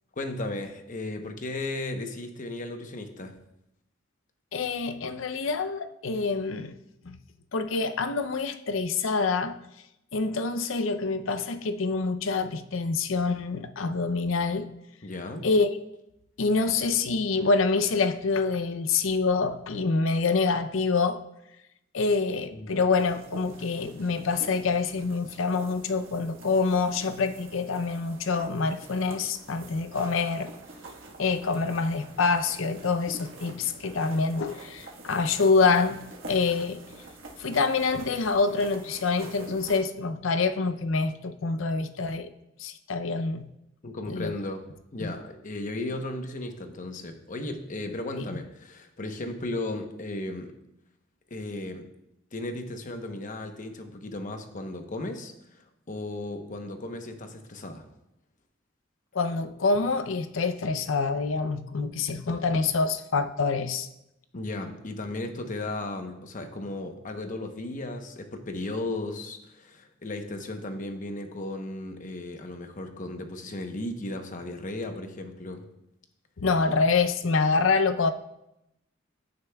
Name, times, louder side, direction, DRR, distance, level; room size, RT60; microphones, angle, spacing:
voice 1, 0.2-3.3 15.0-15.5 22.5-22.8 43.8-44.7 44.9-50.5 51.3-51.8 52.3-57.8 64.3-75.7, left 2 dB, 40° left, 0.9 m, -35 dB
voice 2, 4.5-6.8 7.0-7.2 7.5-9.6 10.1-14.7 15.4-15.7 16.4-21.2 21.9-30.5 31.2-36.0 36.3-36.8 37.4-42.3 42.6-43.5 44.1-44.3 45.0-45.1 48.2-48.4 59.1-63.9 76.4-78.1, left 4 dB, 80° left, 0.6 m, -26 dB
sound 1, 22.9-39.8, right 2 dB, 75° right, 1.4 m, -47 dB
15.0 x 6.7 x 2.3 m
head